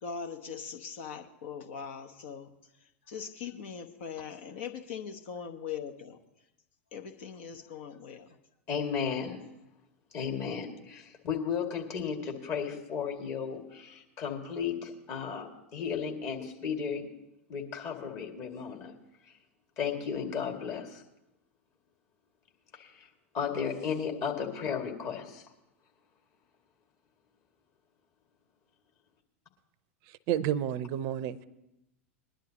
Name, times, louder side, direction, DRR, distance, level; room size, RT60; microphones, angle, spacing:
voice 1, 0.0-6.2 6.9-8.4, left 7 dB, 60° left, 7 dB, 1.0 m, -41 dB
voice 2, 8.7-9.4 10.1-17.0 17.5-18.9 19.8-21.0 22.7-23.1 23.3-25.4, left 7 dB, 40° left, 1 dB, 2.3 m, -34 dB
voice 3, 30.3-31.4, right 10 dB, 45° right, 16 dB, 0.6 m, -30 dB
20.5 x 11.5 x 2.9 m, 0.88 s
hypercardioid pair, 95°, 7 cm